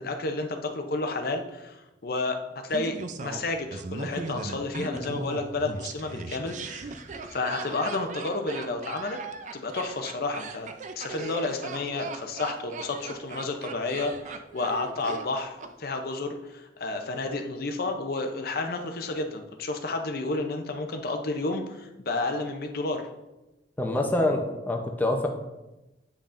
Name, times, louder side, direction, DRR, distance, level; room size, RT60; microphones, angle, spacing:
voice 1, 0.0-6.9 7.3-9.2 9.5-10.7 11.0-15.5 15.8-23.0, left 3 dB, 55° left, 5 dB, 0.6 m, -31 dB
Laughter, 2.7-15.7 16.0-16.1, right 3 dB, 45° right, 0.4 m, -38 dB
voice 2, 23.8-25.3, left 1 dB, 10° left, 2 dB, 0.6 m, -26 dB
8.4 x 5.4 x 2.5 m, 1.0 s
head